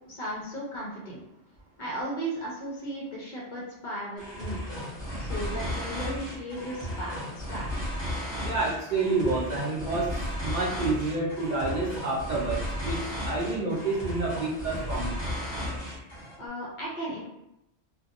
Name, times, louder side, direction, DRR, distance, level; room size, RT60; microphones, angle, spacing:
voice 1, 0.1-1.2 1.8-4.7 5.2-7.6 16.4-17.2, right 1 dB, 50° left, -5 dB, 0.6 m, -36 dB
sound 1, 4.2-16.4, left 1 dB, 5° right, 1.4 m, -34 dB
voice 2, 8.4-15.2, right 3 dB, 55° right, -7 dB, 0.5 m, -29 dB
2.7 x 2.2 x 2.4 m, 0.86 s
omnidirectional pair, 1.2 m